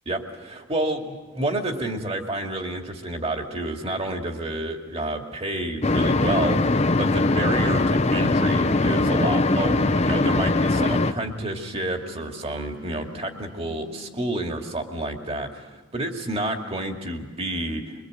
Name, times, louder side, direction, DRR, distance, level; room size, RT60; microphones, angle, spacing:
voice 1, 0.1-15.7 15.9-18.0, right 1 dB, 30° right, 3 dB, 2.2 m, -29 dB
sound 1, 5.8-11.1, left 2 dB, 30° left, 0.7 m, -21 dB
Wind instrument woodwind instrument, 9.0-14.2, left 7 dB, 80° right, 3.4 m, -49 dB
24.5 x 23.5 x 7.9 m, 1.2 s
head